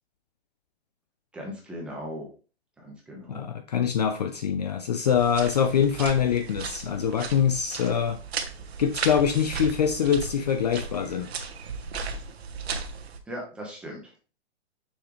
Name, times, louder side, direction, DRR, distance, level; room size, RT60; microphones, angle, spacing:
voice 1, 1.3-2.3 2.8-3.5 13.3-14.3, equal, 5° right, -2 dB, 1.0 m, -38 dB
voice 2, 3.3-8.2 8.8-11.3, left 8 dB, 40° left, 7 dB, 0.5 m, -24 dB
sound 1, 5.1-13.2, right 5 dB, 75° right, 1.4 m, -36 dB
6.4 x 6.3 x 3.1 m, 0.36 s
hypercardioid pair, 175°, 32 cm